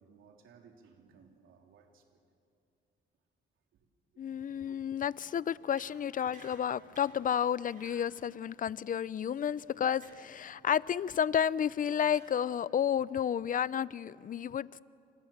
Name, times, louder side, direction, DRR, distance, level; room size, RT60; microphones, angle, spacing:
voice 1, 0.0-2.2 3.7-3.9 4.1-4.8, right 6 dB, 80° right, 3 dB, 3.4 m, -61 dB
voice 2, 4.2-14.8, left 8 dB, 45° left, 20 dB, 0.6 m, -31 dB
sound 1, 5.8-6.0 6.3-7.2 7.7-8.1 10.0-10.2 10.6-10.8 12.1-12.3, right 3 dB, 40° right, 7.5 m, -56 dB
29.5 x 26.0 x 7.3 m, 2.5 s
cardioid pair, 90°, 20 cm